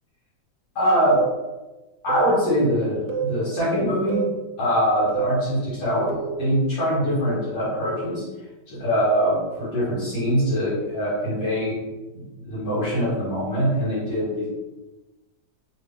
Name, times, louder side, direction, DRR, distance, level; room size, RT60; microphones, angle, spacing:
voice 1, 0.8-1.2 2.0-4.2 4.6-8.2 8.7-11.8 12.4-14.5, equal, 80° left, -9 dB, 2.3 m, -23 dB
sound 1, 1.1-1.3 2.1-2.3 3.1-3.3 4.1-4.3 5.1-5.3 6.1-6.4, right 9 dB, 80° right, 1.3 m, -27 dB
4.0 x 2.5 x 3.5 m, 1.1 s
omnidirectional pair, 2.1 m